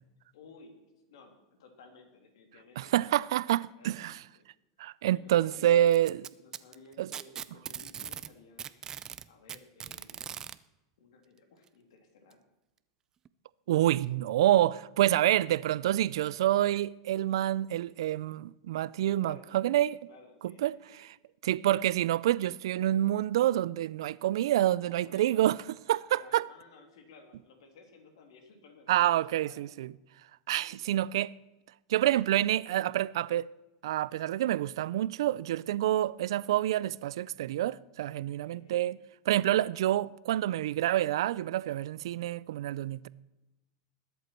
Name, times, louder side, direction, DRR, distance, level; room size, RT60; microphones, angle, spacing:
voice 1, 0.3-0.8 1.1-4.4 5.1-5.9 6.4-8.7 9.2-10.4 11.0-12.4 19.0-19.8 20.1-21.0 24.4-25.6 26.1-29.6 30.5-31.0 38.4-38.9, left 4 dB, 80° left, 3.0 m, -56 dB
voice 2, 2.8-4.2 4.8-6.2 7.0-7.1 13.7-20.0 20.6-20.7 21.0-21.1 21.4-25.6 25.9-26.5 28.9-29.9 30.5-31.3 31.9-33.5 33.8-39.0 39.3-43.1, right 13 dB, 80° right, 0.4 m, -27 dB
Packing tape duct tape, 5.9-8.3 8.6-10.6 11.7-11.8 12.3-12.4 13.3-13.4, right 8 dB, 25° right, 0.5 m, -40 dB
20.5 x 8.2 x 4.5 m
supercardioid pair, 135°, 3 cm